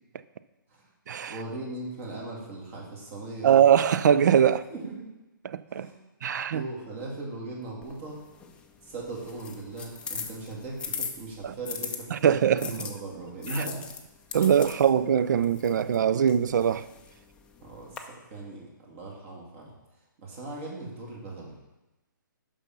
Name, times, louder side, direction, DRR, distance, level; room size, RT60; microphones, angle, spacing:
voice 1, 1.3-3.7 4.7-5.1 5.7-6.0 6.5-8.2 8.8-13.8 17.6-21.5, right 2 dB, 35° right, 2.7 m, -39 dB
voice 2, 3.4-4.6 5.4-5.9 6.2-6.6 11.4-11.5 12.1-12.7 14.3-16.9, right 9 dB, 55° right, 0.4 m, -22 dB
sound 1, 7.8-12.0 12.6-18.0, left 6 dB, 10° left, 0.5 m, -40 dB
6.8 x 5.6 x 6.0 m
hypercardioid pair, 140°, 11 cm